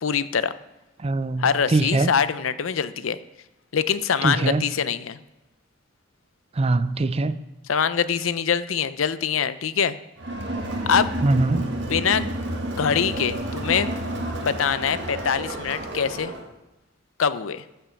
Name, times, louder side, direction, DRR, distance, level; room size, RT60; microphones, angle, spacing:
voice 1, 0.0-0.5 1.4-3.2 3.7-5.2 7.7-10.0 10.9-11.1 11.9-12.3 12.8-13.9 14.4-16.3 17.2-17.6, left 7 dB, 80° left, 14 dB, 0.6 m, -24 dB
voice 2, 1.0-1.4 1.7-2.1 4.2-4.6 6.6-7.4 11.2-11.7, right 2 dB, 30° right, 14 dB, 0.5 m, -21 dB
Crowd, 10.2-16.5, right 1 dB, 60° right, 1.8 m, -30 dB
13.5 x 5.7 x 7.1 m, 1.0 s
head